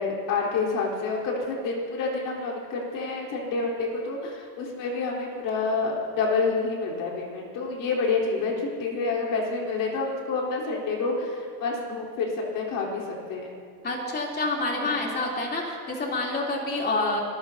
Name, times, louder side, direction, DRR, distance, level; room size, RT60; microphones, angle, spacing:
voice 1, 0.0-13.0 13.3-13.5 14.7-15.0, left 4 dB, 45° left, -2 dB, 4.1 m, -28 dB
voice 2, 13.8-17.2, left 2 dB, 20° left, -2 dB, 3.4 m, -28 dB
26.0 x 16.0 x 2.8 m, 2.2 s
supercardioid pair, 130°, 47 cm